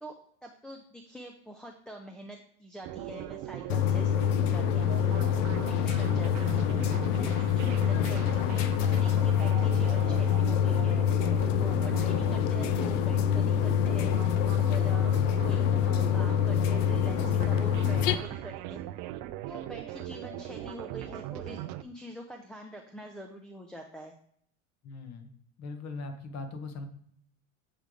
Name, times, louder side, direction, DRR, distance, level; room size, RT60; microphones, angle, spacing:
voice 1, 0.0-11.1 11.6-14.2 14.6-18.8 19.5-24.2, equal, ahead, 0 dB, 0.4 m, -45 dB
sound 1, 2.8-21.8, right 12 dB, 55° right, 0.5 m, -39 dB
sound 2, 3.7-18.1, left 9 dB, 80° left, 0.6 m, -26 dB
voice 2, 24.8-25.3 25.6-26.9, left 3 dB, 45° left, 6 dB, 1.2 m, -40 dB
7.8 x 3.4 x 3.8 m, 0.66 s
hypercardioid pair, 95°, 37 cm